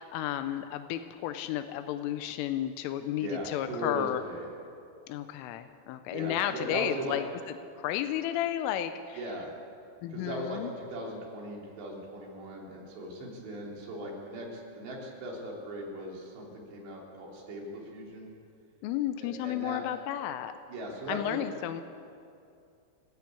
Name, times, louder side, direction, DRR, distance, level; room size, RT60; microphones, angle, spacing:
voice 1, 0.0-4.2 5.1-7.2 7.8-9.2 10.0-10.7 18.8-20.5 21.1-21.8, left 12 dB, 90° left, 9 dB, 3.3 m, -32 dB
voice 2, 3.2-4.5 6.1-7.2 9.2-9.5 10.1-18.3 19.2-19.8 20.7-21.5, right 1 dB, 65° right, -2 dB, 5.5 m, -38 dB
29.5 x 10.5 x 8.5 m, 2.5 s
omnidirectional pair, 5.6 m